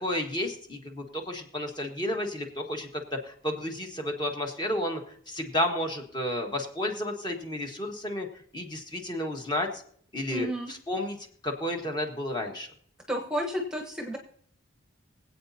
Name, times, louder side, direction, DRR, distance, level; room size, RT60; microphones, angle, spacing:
voice 1, 0.0-5.0 5.3-9.8 10.1-11.2 11.4-12.7, left 1 dB, 20° left, 2 dB, 1.3 m, -32 dB
voice 2, 10.3-10.7 13.1-14.2, equal, 5° right, 3 dB, 1.0 m, -31 dB
24.0 x 8.3 x 2.8 m, 0.62 s
head